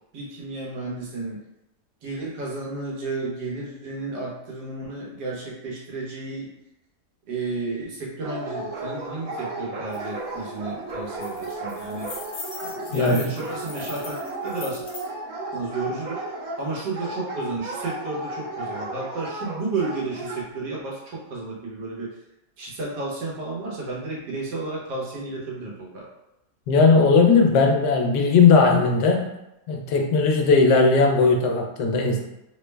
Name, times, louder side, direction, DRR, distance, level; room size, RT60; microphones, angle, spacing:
voice 1, 0.1-1.4 2.0-6.5 7.3-12.1 12.6-14.8 15.5-16.2 16.6-22.1 22.6-26.1, right 3 dB, 90° right, -4 dB, 1.6 m, -32 dB
Dog, 8.2-20.4, right 2 dB, 65° right, 1.1 m, -34 dB
sound 1, 9.9-10.0 10.3-10.6 10.9-15.1, left 3 dB, 65° left, 1.2 m, -40 dB
voice 2, 12.9-13.3 26.7-29.3 29.7-32.2, left 4 dB, 90° left, 2 dB, 1.2 m, -18 dB
3.5 x 2.1 x 3.2 m, 0.90 s
omnidirectional pair, 1.7 m